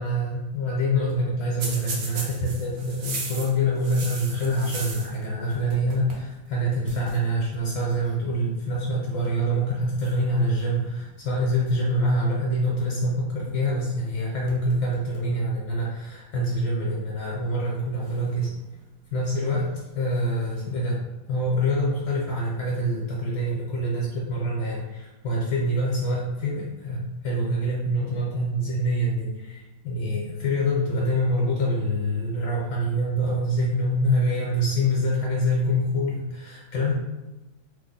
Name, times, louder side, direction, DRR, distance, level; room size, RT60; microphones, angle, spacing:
voice 1, 0.0-18.5 19.1-19.6 19.9-21.0 21.3-36.9, equal, 65° left, -4 dB, 1.3 m, -25 dB
sound 1, 1.6-5.2 5.5-6.3 6.5-6.6 6.8-7.2 8.0-8.3 9.1-9.4 10.0-11.0 14.0-14.1 14.5-15.3 15.7-15.8 16.7-16.8 18.0-18.9 20.1-20.7, right 3 dB, 75° right, 0.7 m, -38 dB
3.3 x 2.1 x 3.8 m, 1.1 s
omnidirectional pair, 2.3 m